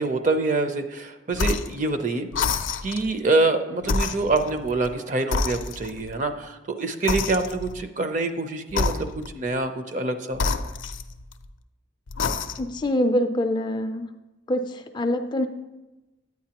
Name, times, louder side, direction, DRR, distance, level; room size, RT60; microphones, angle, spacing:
voice 1, 0.0-2.3 2.8-10.4, right 3 dB, 40° right, 8 dB, 0.5 m, -25 dB
sound 1, 1.3-1.8 2.3-3.1 3.8-4.9 5.3-6.1 7.1-7.8 8.7-9.4 10.3-11.5 12.1-12.8, left 4 dB, 85° left, 0.5 m, -28 dB
voice 2, 12.6-14.1 14.5-15.5, left 1 dB, 25° left, 6 dB, 0.4 m, -25 dB
9.3 x 9.0 x 2.9 m, 1.0 s
head